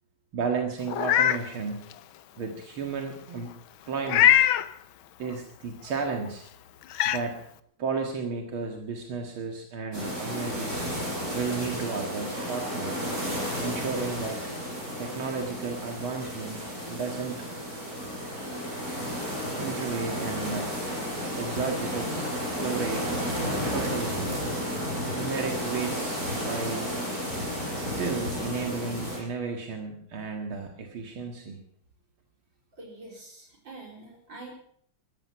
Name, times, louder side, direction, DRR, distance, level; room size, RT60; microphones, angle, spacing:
voice 1, 0.3-1.9 2.4-3.5 3.9-4.4 5.2-6.4 7.1-7.4 7.8-13.0 13.6-14.5 15.0-17.4 19.6-20.8 21.4-22.3 22.6-24.4 25.1-27.0 27.7-31.6, right 5 dB, 80° right, 3 dB, 2.6 m, -33 dB
Meow, 0.9-1.4 1.9-2.0 4.0-4.7 6.3-6.4 6.9-7.2, left 11 dB, 80° left, 1.6 m, -21 dB
sound 1, 9.9-29.2, equal, 45° right, 7.6 m, -32 dB
voice 2, 32.7-34.6, right 2 dB, 60° right, 0 dB, 4.8 m, -45 dB
16.0 x 14.5 x 5.7 m, 0.62 s
omnidirectional pair, 2.3 m